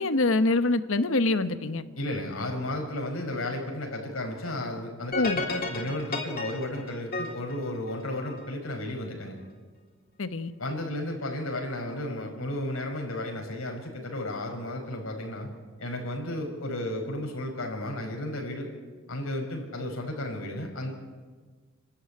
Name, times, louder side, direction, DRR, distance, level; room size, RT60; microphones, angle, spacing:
voice 1, 0.0-1.8 5.1-5.4 10.2-10.5, left 2 dB, 70° left, 12 dB, 1.1 m, -25 dB
voice 2, 2.0-9.4 10.6-15.5 15.8-18.7 19.1-20.9, left 1 dB, 85° left, 1 dB, 5.5 m, -33 dB
sound 1, 5.1-8.5, left 3 dB, 45° left, 3.5 m, -33 dB
28.0 x 13.0 x 9.8 m, 1.4 s
head